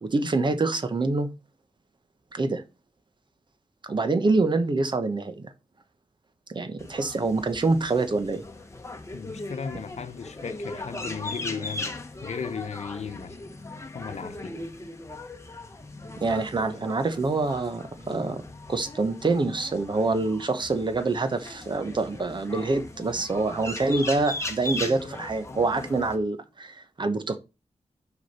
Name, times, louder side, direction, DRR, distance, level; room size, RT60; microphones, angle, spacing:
voice 1, 0.0-1.3 2.3-2.6 3.8-5.5 6.5-8.4 16.2-18.4 18.7-27.4, right 3 dB, 40° right, 1.1 m, -26 dB
sound 1, 6.8-26.2, left 2 dB, 25° left, 1.3 m, -38 dB
voice 2, 9.1-13.4 13.9-14.6, left 6 dB, 75° left, 1.0 m, -36 dB
6.5 x 4.9 x 5.8 m
wide cardioid pair, 110°, 12 cm